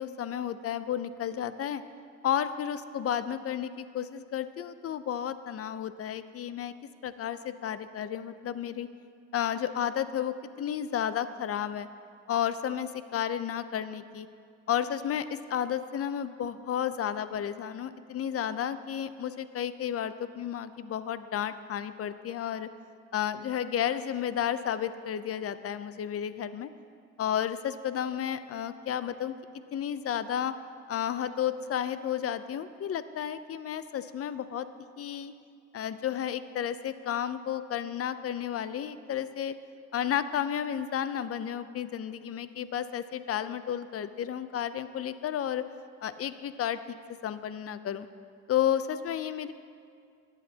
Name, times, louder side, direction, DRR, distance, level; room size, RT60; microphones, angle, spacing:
voice 1, 0.0-1.8 2.2-6.7 7.0-8.9 9.3-11.9 12.3-14.3 14.7-22.7 23.1-26.7 27.2-29.3 29.7-30.5 30.9-34.7 35.0-35.3 35.7-39.5 39.9-45.6 46.0-47.0 47.2-48.1 48.5-49.5, left 9 dB, 50° left, 13 dB, 0.6 m, -32 dB
22.5 x 8.2 x 2.8 m, 2.2 s
cardioid pair, 90°, 30 cm